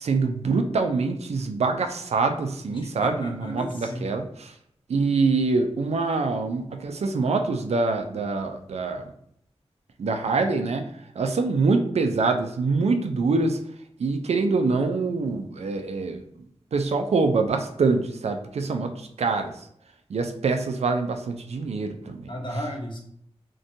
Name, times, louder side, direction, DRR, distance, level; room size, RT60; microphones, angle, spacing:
voice 1, 0.0-4.6 4.9-9.1 10.0-10.9 11.2-13.6 14.0-16.2 16.7-19.7 20.1-22.3, right 4 dB, 75° right, 5 dB, 0.4 m, -25 dB
voice 2, 2.7-4.1 22.3-23.0, equal, 45° left, 0 dB, 0.8 m, -34 dB
2.5 x 2.2 x 2.6 m, 0.70 s
cardioid pair, 50°, 11 cm